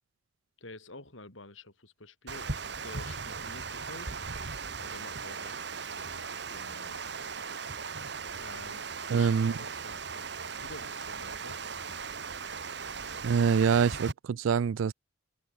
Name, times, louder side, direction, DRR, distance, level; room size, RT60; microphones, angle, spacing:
voice 1, 0.6-2.5 2.8-4.2 4.8-7.0 8.4-10.0 10.4-11.6, left 2 dB, 75° left, 5.2 m, -49 dB
Water, 2.3-14.1, right 5 dB, 55° right, 1.7 m, -38 dB
voice 2, 9.1-9.5 13.2-14.9, right 6 dB, 80° right, 0.4 m, -25 dB
open air
head